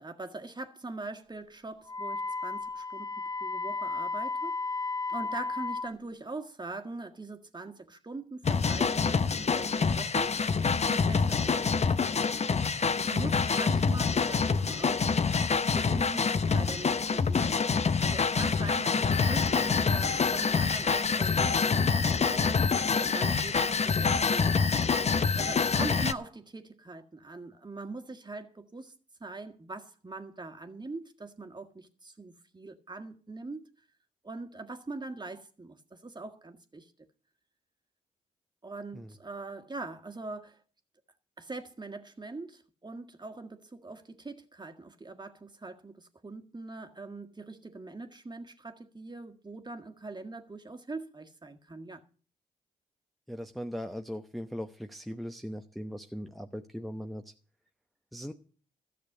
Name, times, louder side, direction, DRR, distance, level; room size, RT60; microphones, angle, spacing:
voice 1, 0.0-4.6 5.1-10.4 10.9-12.1 13.0-15.1 15.5-17.6 18.0-25.1 25.3-28.9 29.2-33.7 34.2-36.9 38.6-40.6 41.4-52.0, right 3 dB, 25° right, 1.7 m, -42 dB
Wind instrument woodwind instrument, 1.9-5.9, left 3 dB, 20° left, 1.1 m, -34 dB
sound 1, 8.4-26.1, left 5 dB, 40° left, 0.8 m, -26 dB
voice 2, 53.3-57.3 58.1-58.3, equal, ahead, 0.9 m, -39 dB
13.5 x 6.7 x 7.8 m
hypercardioid pair, 40°, 17 cm